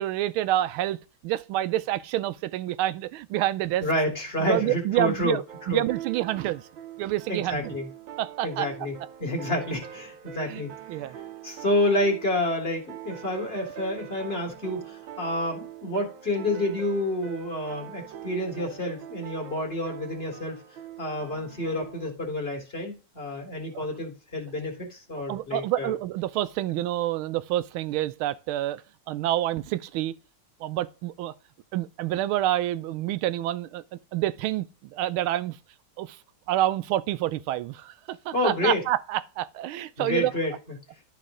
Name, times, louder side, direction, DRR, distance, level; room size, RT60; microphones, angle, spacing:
voice 1, 0.0-3.9 4.5-6.6 7.0-7.8 8.2-8.7 10.4-10.6 10.9-11.1 23.7-23.9 25.3-28.8 29.1-30.1 30.6-31.3 31.7-35.6 36.0-36.2 36.5-40.3, right 14 dB, 90° right, 1.4 m, -28 dB
voice 2, 3.8-5.4 5.7-5.8 7.3-7.9 8.4-11.2 11.4-20.6 21.0-25.9 38.3-38.8 40.0-40.5, left 1 dB, 30° left, 2.0 m, -29 dB
sound 1, 5.5-22.1, right 10 dB, 75° right, 1.6 m, -43 dB
12.0 x 4.2 x 3.7 m
omnidirectional pair, 2.2 m